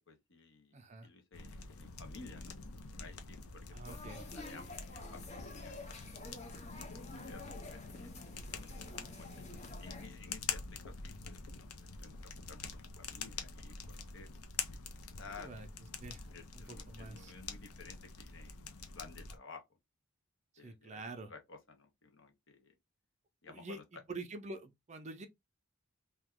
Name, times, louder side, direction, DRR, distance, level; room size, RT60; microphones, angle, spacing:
voice 1, 0.1-2.6 3.0-4.0 4.3-6.3 6.9-8.1 8.5-9.3 9.8-14.3 14.7-15.5 16.3-19.8 20.6-21.0 21.3-22.8 23.4-23.8, left 4 dB, 60° left, 0.8 m, -55 dB
voice 2, 0.7-1.1 3.7-4.2 15.4-15.7 16.0-16.3 16.5-17.3 20.5-21.3 23.5-23.8 24.1-25.3, right 2 dB, 30° right, 0.5 m, -46 dB
sound 1, 1.3-19.4, left 5 dB, 80° left, 0.6 m, -46 dB
sound 2, 3.8-10.1, left 2 dB, 30° left, 0.6 m, -50 dB
2.9 x 2.3 x 3.5 m
head